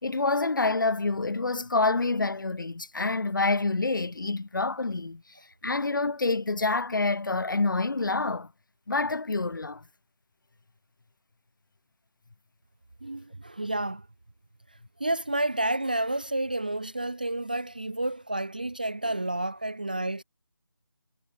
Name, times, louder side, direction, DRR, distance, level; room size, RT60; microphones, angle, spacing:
voice 1, 0.0-5.2 5.6-8.5 8.9-9.8, left 3 dB, 55° left, 1.3 m, -27 dB
voice 2, 13.0-14.1 15.0-20.2, right 1 dB, 20° right, 0.5 m, -30 dB
figure-of-eight pair, 175°, 13 cm